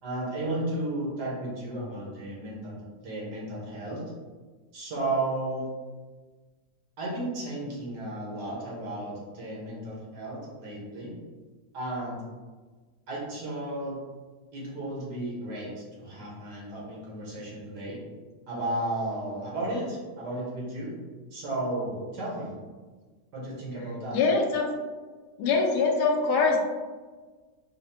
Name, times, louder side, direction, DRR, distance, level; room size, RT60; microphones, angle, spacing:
voice 1, 0.0-4.0 4.7-5.7 7.0-11.1 11.7-12.2 13.1-14.0 14.5-18.0 18.5-21.0 21.3-22.5 23.3-24.2, right 1 dB, 70° right, -5 dB, 1.7 m, -33 dB
voice 2, 24.1-24.7 25.4-26.6, left 4 dB, 75° left, 1 dB, 1.1 m, -23 dB
4.8 x 2.1 x 2.7 m, 1.4 s
omnidirectional pair, 1.8 m